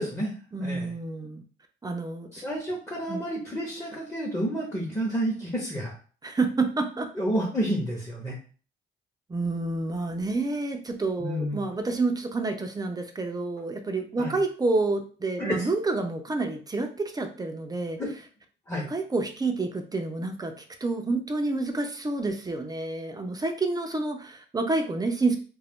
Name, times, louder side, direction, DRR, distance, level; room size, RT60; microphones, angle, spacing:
voice 1, 0.0-0.9 2.3-5.9 7.1-8.4 11.2-11.7 14.2-14.4 15.4-15.7 18.0-18.1 18.7-18.9, equal, 15° left, -3 dB, 0.8 m, -30 dB
voice 2, 0.5-1.4 1.8-2.4 3.1-3.2 6.2-7.1 9.3-18.0 18.7-20.5 20.8-25.4, right 3 dB, 20° right, 5 dB, 0.5 m, -29 dB
2.4 x 2.1 x 3.5 m, 0.39 s
cardioid pair, 90°, 20 cm